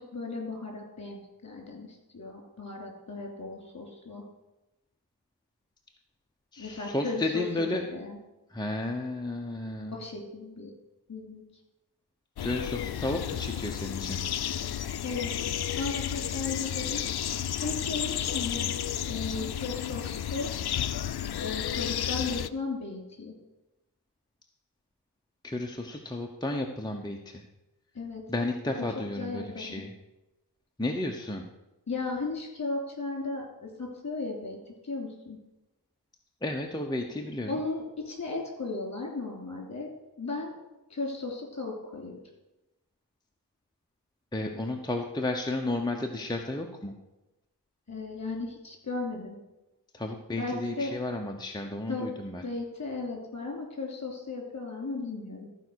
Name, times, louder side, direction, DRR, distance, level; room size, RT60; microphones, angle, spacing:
voice 1, 0.0-4.2 6.6-8.2 9.9-10.7 11.1-11.4 15.0-15.3 15.8-17.0 17.6-18.7 19.1-20.5 21.4-23.3 27.9-28.2 28.6-28.9 29.2-29.8 31.9-35.4 37.5-39.9 40.2-40.5 40.9-42.2 47.9-49.4 50.4-50.9 51.9-52.1 52.4-55.5, left 3 dB, 40° left, 1 dB, 3.0 m, -36 dB
voice 2, 6.5-7.9 8.5-10.0 12.4-14.3 25.4-27.4 28.3-29.9 30.8-31.5 36.4-37.6 44.3-46.9 49.9-52.4, left 2 dB, 10° left, 2 dB, 0.8 m, -32 dB
sound 1, 12.4-22.5, left 10 dB, 70° left, 0.5 m, -32 dB
14.0 x 4.7 x 6.3 m, 0.99 s
wide cardioid pair, 90°, 41 cm